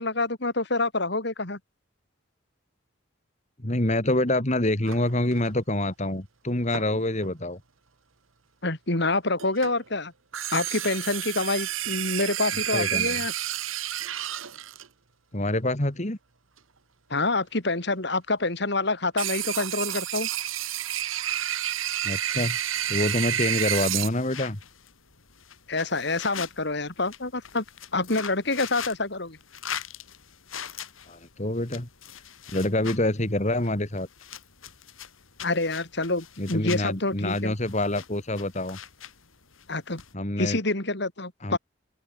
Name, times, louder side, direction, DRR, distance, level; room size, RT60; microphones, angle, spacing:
voice 1, 0.0-1.6 8.6-10.1 10.5-13.3 17.1-20.3 25.7-27.6 27.9-29.4 35.4-37.5 39.7-40.0 40.4-41.6, left 2 dB, 55° left, 3.2 m, -27 dB
voice 2, 3.6-7.6 12.7-13.2 15.3-16.2 22.0-22.6 22.9-24.6 31.1-31.9 32.5-34.1 36.4-38.8 40.1-40.6 41.4-41.6, left 1 dB, 35° left, 2.3 m, -26 dB
sound 1, 4.9-5.5 6.7-7.3 9.4-9.9 10.3-14.9 19.2-24.1, right 11 dB, 85° right, 1.6 m, -30 dB
sound 2, 22.7-40.1, left 8 dB, 90° left, 3.5 m, -43 dB
open air
head